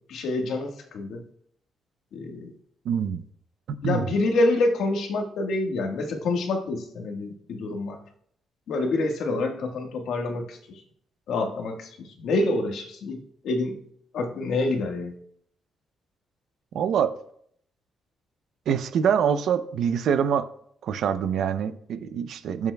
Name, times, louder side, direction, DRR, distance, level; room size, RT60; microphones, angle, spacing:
voice 1, 0.1-1.2 2.1-2.5 3.8-8.0 8.7-10.8 11.3-13.8 14.1-15.1, left 2 dB, 75° left, 3 dB, 1.5 m, -27 dB
voice 2, 2.9-3.2 3.8-4.1 16.7-17.1 18.7-20.5 20.8-22.7, right 8 dB, 70° right, 11 dB, 0.6 m, -25 dB
21.0 x 7.3 x 2.3 m, 0.67 s
wide cardioid pair, 175°, 0 cm